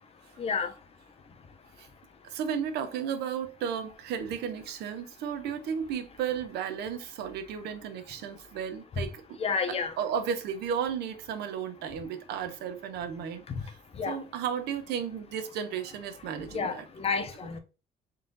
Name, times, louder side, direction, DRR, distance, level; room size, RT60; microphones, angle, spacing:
voice 1, 0.4-0.7 9.4-9.9 13.5-13.6 14.0-14.2 16.5-17.6, left 5 dB, 35° left, 0.8 m, -30 dB
voice 2, 2.2-9.4 9.7-13.7 14.1-16.9, right 8 dB, 75° right, 0.8 m, -34 dB
4.0 x 2.7 x 3.8 m
cardioid pair, 110°, 17 cm